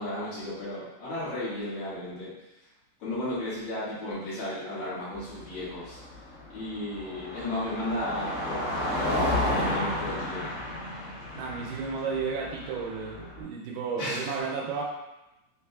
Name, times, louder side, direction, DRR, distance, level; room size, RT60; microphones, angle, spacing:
voice 1, 0.0-2.3 3.0-6.0 6.5-8.6 9.0-10.5 14.0-14.3, left 1 dB, 80° left, -11 dB, 1.1 m, -34 dB
Car passing by, 5.1-13.4, left 1 dB, 55° left, 2.6 m, -32 dB
voice 2, 11.3-14.8, right 5 dB, 80° right, -2 dB, 2.3 m, -33 dB
6.5 x 3.0 x 2.3 m, 0.96 s
omnidirectional pair, 5.0 m